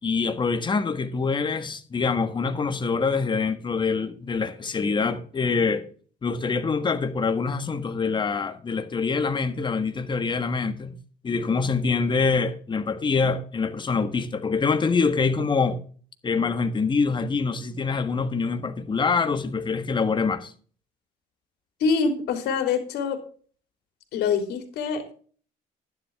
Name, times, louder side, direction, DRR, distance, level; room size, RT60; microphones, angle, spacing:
voice 1, 0.0-5.8 6.2-11.0 11.2-15.8 16.2-20.5, left 4 dB, 30° left, 1.5 m, -25 dB
voice 2, 21.8-23.2 24.1-25.1, left 5 dB, 75° left, 3.2 m, -25 dB
11.5 x 10.5 x 3.6 m
cardioid pair, 110°, 17 cm